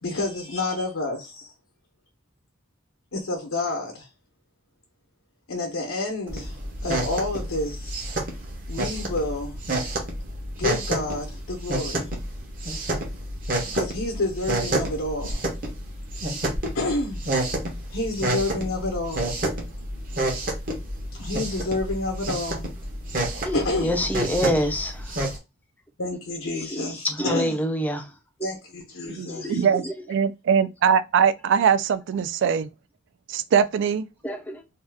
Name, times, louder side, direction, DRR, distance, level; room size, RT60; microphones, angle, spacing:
voice 1, 0.0-1.5 3.1-4.1 5.5-6.5 6.8-8.0 8.7-9.6 10.6-12.1 13.7-15.4 16.7-17.2 17.9-19.3 21.1-22.7 23.5-24.2 24.6-24.7 26.0-27.6 28.4-29.6, left 2 dB, 85° left, 0.9 m, -29 dB
sound 1, 6.3-25.4, right 1 dB, 45° right, 0.9 m, -29 dB
voice 2, 23.5-24.9 26.7-28.0 29.4-29.6 34.2-34.6, equal, 10° left, 0.4 m, -26 dB
voice 3, 29.1-32.7 33.3-34.1, right 7 dB, 60° right, 0.3 m, -22 dB
2.7 x 2.3 x 3.4 m
head